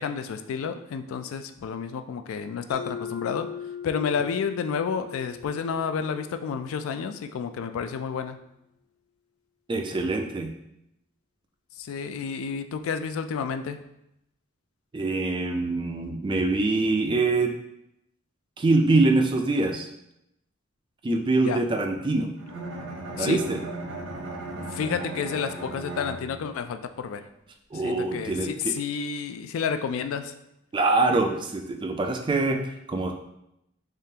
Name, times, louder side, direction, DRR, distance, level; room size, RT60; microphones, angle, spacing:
voice 1, 0.0-3.5 3.8-8.4 11.8-13.8 21.4-21.6 23.2-23.4 24.7-27.2 27.8-30.3, left 6 dB, 75° left, 10 dB, 0.3 m, -30 dB
Mallet percussion, 2.7-7.3, left 7 dB, 50° left, 0.8 m, -40 dB
voice 2, 9.7-10.5 14.9-17.5 18.6-19.9 21.0-22.3 23.2-23.6 27.7-28.7 30.7-32.6 32.9-33.1, right 2 dB, 25° right, 4 dB, 0.3 m, -24 dB
Bowed string instrument, 22.4-26.7, right 2 dB, 90° right, 1.0 m, -36 dB
3.7 x 3.3 x 2.8 m, 0.81 s
head